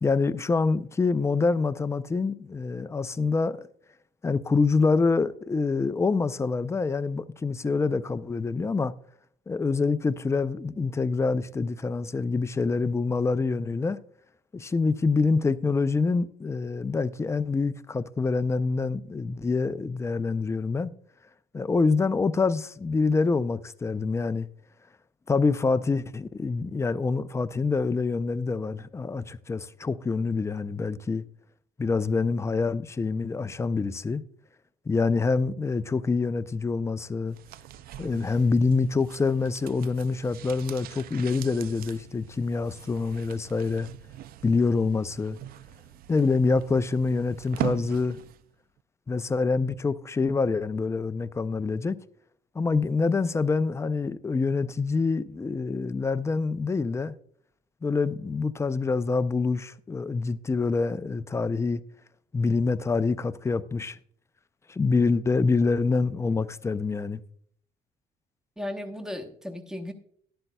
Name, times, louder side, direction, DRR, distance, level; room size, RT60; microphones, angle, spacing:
voice 1, 0.0-3.7 4.2-8.9 9.5-14.0 14.5-20.9 21.5-24.5 25.3-31.2 31.8-34.2 34.9-37.4 38.0-43.9 44.4-45.4 46.1-48.2 49.1-52.0 52.5-57.1 57.8-61.8 62.3-64.0 64.7-67.2, left 4 dB, 15° left, 0.4 m, -26 dB
sound 1, 37.3-48.5 48.8-48.9, right 13 dB, 60° right, 0.4 m, -41 dB
voice 2, 68.6-69.9, left 1 dB, 5° right, 1.0 m, -35 dB
12.0 x 11.5 x 2.2 m
cardioid pair, 110°, 17 cm